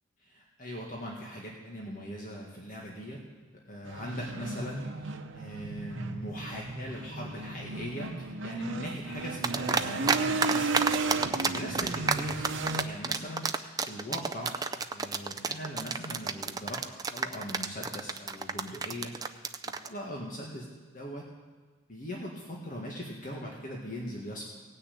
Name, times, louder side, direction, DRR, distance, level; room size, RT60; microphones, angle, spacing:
voice 1, 0.2-3.2 3.5-10.7 11.4-12.5 12.7-14.5 14.9-16.8 17.1-20.7 20.9-21.2 21.9-24.5, equal, 45° left, -3 dB, 1.9 m, -40 dB
sound 1, 3.9-12.8, right 3 dB, 80° right, 0.9 m, -34 dB
sound 2, 9.4-10.2 10.4-19.9, right 4 dB, 20° right, 0.4 m, -29 dB
17.0 x 6.5 x 8.6 m, 1.4 s
head